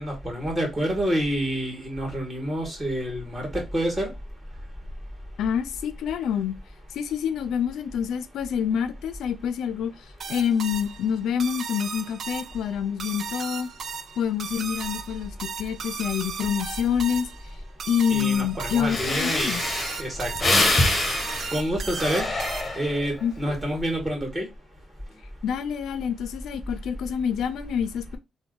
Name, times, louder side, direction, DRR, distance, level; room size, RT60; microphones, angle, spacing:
voice 1, 0.0-4.1 18.1-19.6 20.0-20.7 21.5-22.3 22.8-24.5, equal, 20° right, 1.9 m, -28 dB
voice 2, 5.4-6.5 6.9-13.7 14.2-17.3 17.9-19.6 23.2-23.5 25.4-28.2, left 8 dB, 75° left, 0.4 m, -27 dB
sound 1, 10.2-23.0, right 6 dB, 55° right, 0.5 m, -36 dB
Breathing, 18.5-18.6 18.9-23.1 23.6-23.9, left 2 dB, 20° left, 0.9 m, -25 dB
3.4 x 2.1 x 3.8 m
cardioid pair, 90°, 0 cm